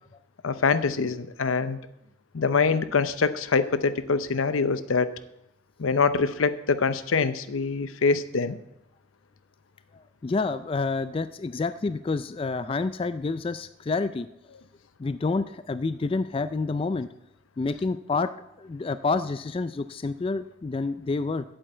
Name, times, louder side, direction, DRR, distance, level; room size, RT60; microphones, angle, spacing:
voice 1, 0.4-1.8 2.3-5.1 5.8-8.6, left 4 dB, 85° left, 13 dB, 0.7 m, -24 dB
voice 2, 9.9-14.3 15.0-17.1 17.6-18.3 18.6-21.4, left 3 dB, 25° left, 13 dB, 0.3 m, -28 dB
8.2 x 7.8 x 7.8 m, 0.86 s
head